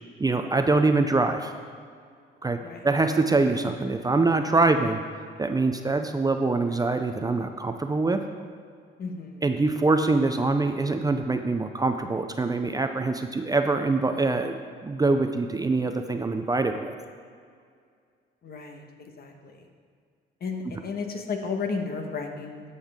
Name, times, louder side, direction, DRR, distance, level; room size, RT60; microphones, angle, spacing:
voice 1, 0.2-1.5 2.4-2.6 2.8-5.0 5.4-8.2 9.4-17.0, right 3 dB, 20° right, 6 dB, 0.5 m, -24 dB
voice 2, 9.0-9.4 18.4-19.7 20.4-22.6, left 4 dB, 50° left, 4 dB, 1.2 m, -33 dB
13.5 x 5.6 x 3.6 m, 2.2 s
cardioid pair, 90°, 20 cm